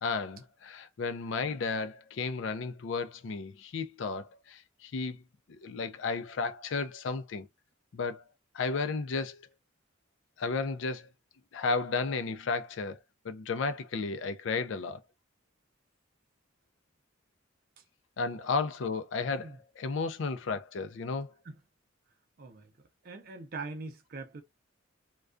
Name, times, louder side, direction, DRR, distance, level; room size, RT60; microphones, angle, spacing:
voice 1, 0.0-5.2 5.5-7.5 7.9-8.2 8.5-9.5 10.4-11.1 11.5-13.0 13.2-15.0 18.2-21.3, left 4 dB, 65° left, 0.4 m, -33 dB
voice 2, 22.4-22.7 23.0-24.4, right 3 dB, 50° right, 0.5 m, -42 dB
2.3 x 2.2 x 2.4 m
head